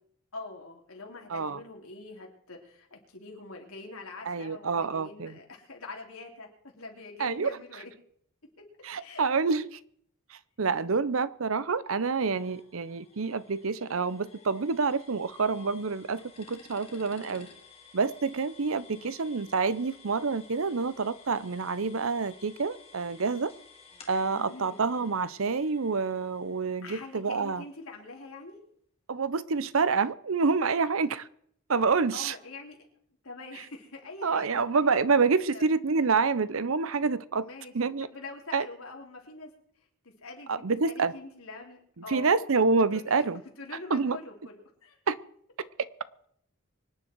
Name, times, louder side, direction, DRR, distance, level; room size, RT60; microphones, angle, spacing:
voice 1, 0.3-6.5 6.8-7.9 9.0-9.2 10.8-10.9 17.2-17.5 18.9-19.1 24.3-24.8 26.8-28.6 32.1-32.8 33.2-34.6 35.5-35.7 37.4-37.7 38.0-39.5 40.0-42.3 42.9-43.3 43.6-45.0, left 3 dB, 90° left, 3.5 m, -44 dB
voice 2, 4.3-5.4 7.2-7.6 8.8-9.8 10.3-17.5 17.9-23.5 24.1-27.6 29.1-31.3 31.7-32.3 34.2-37.5 37.7-38.1 38.5-38.7 40.5-41.1 42.1-43.4 43.9-44.2 45.1-45.2, right 4 dB, 75° right, 0.7 m, -27 dB
sound 1, 12.2-27.9, left 5 dB, 30° left, 2.2 m, -55 dB
25.0 x 10.0 x 4.6 m
head